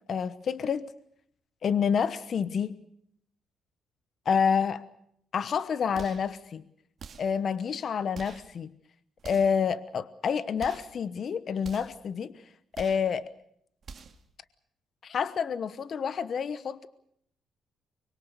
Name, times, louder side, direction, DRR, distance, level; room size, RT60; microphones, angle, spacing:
voice 1, 0.1-0.9 1.6-2.8 4.2-4.8 5.3-6.6 7.2-8.7 9.2-12.4 12.8-13.2 15.0-16.9, left 7 dB, 55° left, 15 dB, 1.1 m, -28 dB
sound 1, 5.9-6.3 7.0-7.4 8.1-8.5 9.2-9.6 10.6-11.0 11.6-12.0 12.7-13.1 13.8-14.3, right 5 dB, 50° right, 2.1 m, -46 dB
24.5 x 22.5 x 6.8 m, 0.70 s
cardioid pair, 90°, 0 cm